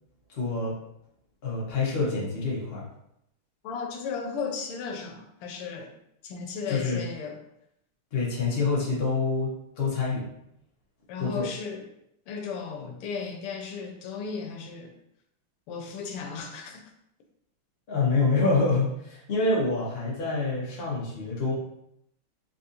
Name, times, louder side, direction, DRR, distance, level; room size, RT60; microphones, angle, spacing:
voice 1, 0.3-0.7 1.4-2.9 6.7-7.0 8.1-10.3 11.2-11.5 17.9-21.5, left 3 dB, 45° left, -5 dB, 0.8 m, -26 dB
voice 2, 3.6-5.9 6.2-7.4 11.1-11.9 12.3-14.9 15.7-16.8, left 5 dB, 90° left, 3 dB, 1.6 m, -35 dB
4.0 x 2.5 x 2.7 m, 0.78 s
omnidirectional pair, 2.4 m